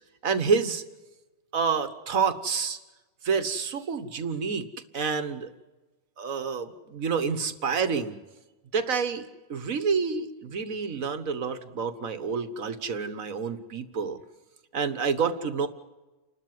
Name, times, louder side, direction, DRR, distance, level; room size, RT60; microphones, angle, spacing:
voice 1, 0.2-0.8 1.5-2.8 3.2-4.7 4.9-5.5 6.2-8.2 8.7-9.2 9.5-14.2 14.7-15.7, right 5 dB, 80° right, 10 dB, 1.8 m, -28 dB
29.5 x 12.5 x 9.5 m, 1.1 s
omnidirectional pair, 1.4 m